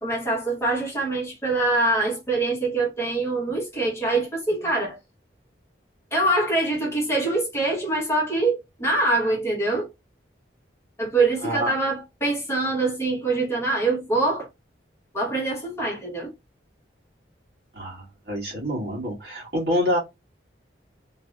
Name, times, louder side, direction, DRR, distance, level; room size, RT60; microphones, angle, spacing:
voice 1, 0.0-5.0 6.1-9.9 11.0-14.5 15.1-16.3, right 2 dB, 15° left, 1.2 m, -24 dB
voice 2, 11.4-11.7 17.7-20.0, equal, 60° right, 1.6 m, -27 dB
3.2 x 2.8 x 2.4 m
head